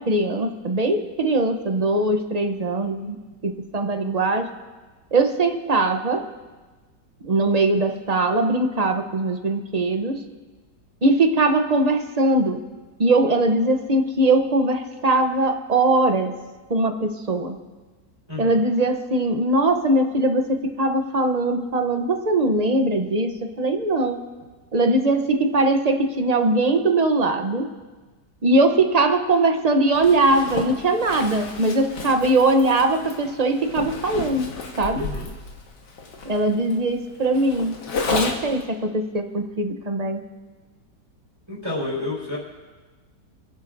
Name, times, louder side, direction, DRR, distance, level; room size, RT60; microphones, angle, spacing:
voice 1, 0.0-4.5 5.1-6.3 7.2-10.2 11.0-12.6 13.0-16.3 16.7-17.6 18.4-24.2 24.7-27.7 28.4-34.5 34.8-35.1 36.2-37.8 38.1-40.2, right 2 dB, 35° right, 5 dB, 0.6 m, -21 dB
voice 2, 18.3-18.6 34.9-35.3 41.5-42.4, left 2 dB, 15° right, -6 dB, 4.3 m, -30 dB
Zipper (clothing), 29.9-38.6, left 3 dB, 85° left, 2.1 m, -32 dB
27.0 x 11.0 x 2.6 m, 1.3 s
omnidirectional pair, 1.8 m